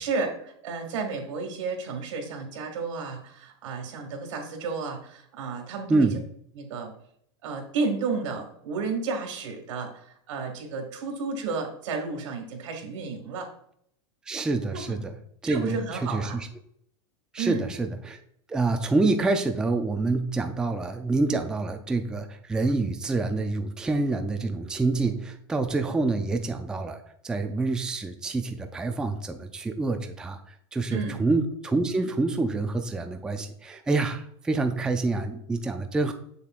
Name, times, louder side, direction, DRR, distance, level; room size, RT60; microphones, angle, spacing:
voice 1, 0.0-6.1 6.6-6.9 7.4-13.5 14.7-15.0 15.4-16.4 17.4-17.7 30.9-31.2, right 4 dB, 80° right, 3 dB, 1.9 m, -32 dB
voice 2, 14.3-15.2 15.4-16.5 17.3-18.2 18.5-36.1, right 3 dB, 5° right, 6 dB, 0.3 m, -27 dB
6.9 x 6.6 x 2.4 m, 0.68 s
supercardioid pair, 145°, 16 cm